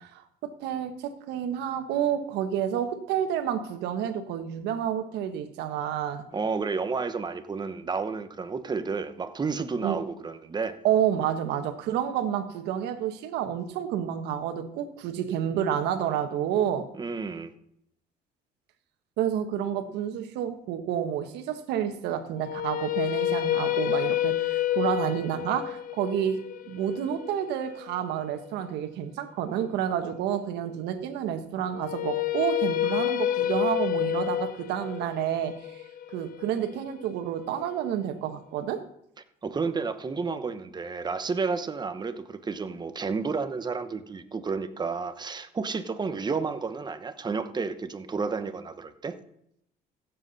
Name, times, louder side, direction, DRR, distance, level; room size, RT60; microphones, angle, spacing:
voice 1, 0.0-6.2 9.8-10.0 10.8-16.9 19.2-35.8 36.1-38.8, right 9 dB, 85° right, 8 dB, 1.3 m, -29 dB
voice 2, 6.3-10.7 16.9-17.5 39.4-49.2, right 4 dB, 25° right, 10 dB, 0.9 m, -31 dB
sound 1, 22.4-28.5 31.7-37.8, left 12 dB, 55° left, 0.7 m, -29 dB
15.5 x 7.6 x 4.1 m, 0.73 s
cardioid pair, 110°, 17 cm